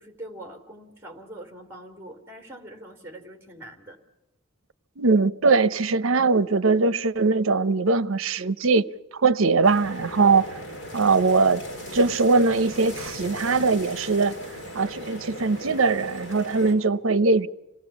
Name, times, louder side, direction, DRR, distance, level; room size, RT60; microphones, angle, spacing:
voice 1, 0.0-4.0, right 1 dB, 10° right, 2.7 m, -43 dB
voice 2, 5.0-8.8 9.1-10.5 10.9-11.6 11.9-14.4 14.7-17.5, right 4 dB, 70° right, 0.7 m, -21 dB
sound 1, 9.6-16.7, left 1 dB, 60° left, 6.7 m, -38 dB
27.5 x 18.0 x 7.1 m
head